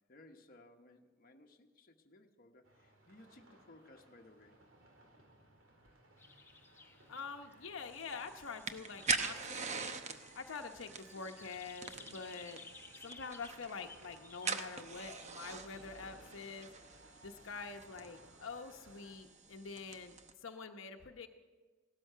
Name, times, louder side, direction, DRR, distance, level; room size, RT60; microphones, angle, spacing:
voice 1, 0.1-4.6, left 2 dB, 45° left, 3 dB, 1.1 m, -60 dB
sound 1, 2.6-19.1, right 1 dB, 75° right, 2.8 m, -62 dB
sound 2, 6.2-16.0, left 4 dB, 10° left, 1.2 m, -58 dB
voice 2, 7.1-10.0 10.3-12.6 13.0-16.7 17.2-20.1 20.4-21.3, left 4 dB, 80° left, 4 dB, 0.9 m, -46 dB
sound 3, 7.8-20.3, right 4 dB, 35° right, 0.8 m, -43 dB
17.0 x 13.0 x 5.6 m, 1.3 s
head